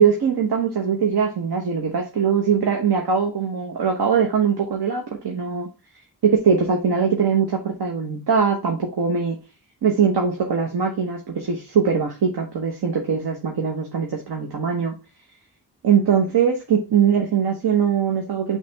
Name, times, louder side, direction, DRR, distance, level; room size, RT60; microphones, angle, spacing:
voice 1, 0.0-5.7 6.4-9.4 9.8-14.9 15.8-18.6, right 6 dB, 70° right, 1 dB, 1.2 m, -21 dB
8.4 x 3.3 x 3.4 m, 0.29 s
wide cardioid pair, 115°, 39 cm